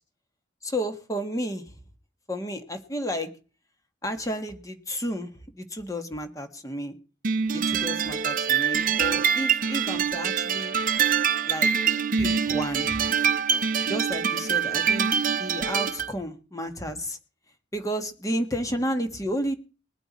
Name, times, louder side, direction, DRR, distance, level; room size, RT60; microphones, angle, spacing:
voice 1, 0.6-1.8 2.3-3.3 4.0-7.0 7.5-10.7 11.4-11.7 12.2-13.0 13.9-15.1 15.4-17.2 17.7-19.5, equal, 20° left, 7 dB, 1.5 m, -32 dB
sound 1, 7.2-16.1, right 7 dB, 45° right, 0.7 m, -24 dB
20.5 x 8.2 x 4.2 m, 0.34 s
head